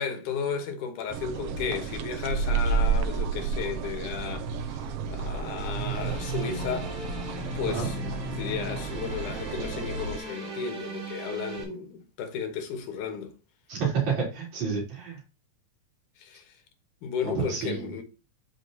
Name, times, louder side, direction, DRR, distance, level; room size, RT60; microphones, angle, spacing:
voice 1, 0.0-6.9 7.5-13.4 16.2-16.5 17.0-18.0, left 6 dB, 90° left, 2.8 m, -34 dB
sound 1, 1.1-10.2, right 5 dB, 85° right, 1.3 m, -31 dB
sound 2, 5.8-11.6, equal, 30° right, 3.1 m, -39 dB
voice 2, 13.7-15.2 17.2-17.9, right 6 dB, 65° right, 5.0 m, -29 dB
13.0 x 4.3 x 2.8 m
omnidirectional pair, 3.5 m